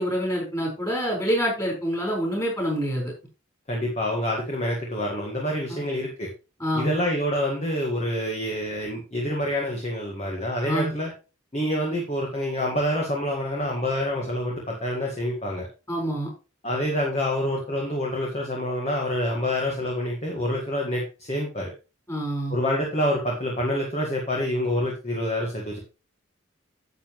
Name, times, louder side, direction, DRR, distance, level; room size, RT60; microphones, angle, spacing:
voice 1, 0.0-3.1 5.7-5.8 6.6-6.9 10.6-10.9 15.9-16.3 22.1-22.6, equal, 15° left, -1 dB, 4.8 m, -26 dB
voice 2, 3.7-6.3 6.7-11.1 11.5-15.7 16.6-21.7 22.5-25.8, left 1 dB, 30° left, -1 dB, 1.7 m, -27 dB
10.0 x 7.6 x 3.1 m, 0.31 s
head